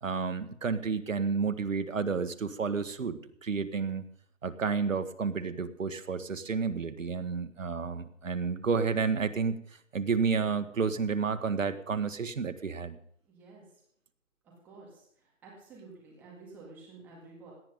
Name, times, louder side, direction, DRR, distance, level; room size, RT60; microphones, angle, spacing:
voice 1, 0.0-4.1 4.4-9.6 9.9-13.0, right 5 dB, 75° right, 10 dB, 1.6 m, -31 dB
voice 2, 13.2-13.6 14.6-15.0 15.4-17.5, right 3 dB, 5° right, -3 dB, 1.9 m, -50 dB
17.5 x 10.5 x 5.4 m, 0.67 s
hypercardioid pair, 175°, 39 cm